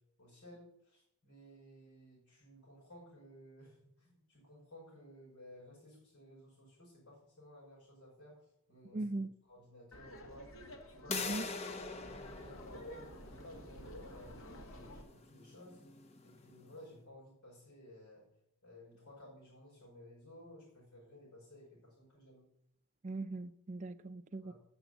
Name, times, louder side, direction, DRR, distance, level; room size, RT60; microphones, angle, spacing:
voice 1, 0.2-8.4 8.7-9.0 9.5-11.3 11.6-15.8 16.2-18.2 18.6-22.5 24.4-24.5, left 1 dB, 85° left, 5.4 m, -56 dB
voice 2, 8.9-9.3 11.1-11.5 23.0-24.5, right 2 dB, 35° right, 0.4 m, -40 dB
Laughter, 9.9-15.0, left 1 dB, 65° left, 1.6 m, -51 dB
sound 1, 11.1-16.7, left 4 dB, 30° left, 0.6 m, -45 dB
8.2 x 7.0 x 7.9 m
head